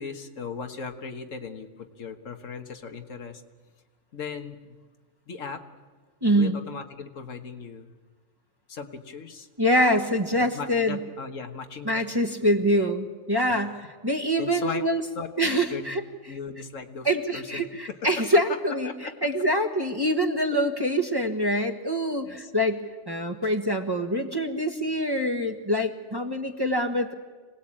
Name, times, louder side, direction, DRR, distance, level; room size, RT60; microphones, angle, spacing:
voice 1, 0.0-3.4 4.1-4.8 5.3-5.6 6.3-7.9 8.7-9.5 10.5-12.0 12.6-12.9 13.5-13.6 14.4-14.9 15.1-15.3 15.7-15.9 16.3-18.3 18.8-19.1 22.0-22.5 23.4-23.5, left 5 dB, 80° left, 6 dB, 1.8 m, -38 dB
voice 2, 6.2-6.5 9.6-11.0 11.8-13.7 14.0-15.0 15.4-16.0 17.0-18.9 19.2-27.1, equal, 20° right, 5 dB, 1.4 m, -25 dB
25.5 x 18.0 x 8.8 m, 1.4 s
omnidirectional pair, 1.3 m